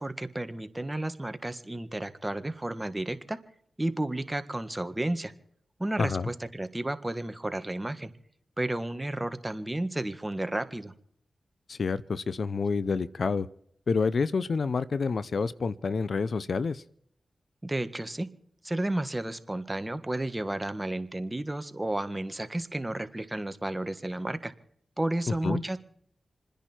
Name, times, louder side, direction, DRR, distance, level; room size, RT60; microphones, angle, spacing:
voice 1, 0.0-3.4 3.8-5.3 5.8-8.1 8.6-10.9 17.6-18.3 18.6-24.5 25.0-25.8, right 1 dB, 20° right, 10 dB, 1.6 m, -32 dB
voice 2, 6.0-6.3 11.7-13.5 13.9-16.8 25.4-25.6, left 4 dB, 70° left, 16 dB, 0.6 m, -28 dB
28.5 x 10.5 x 4.5 m, 0.67 s
cardioid pair, 40°, 0 cm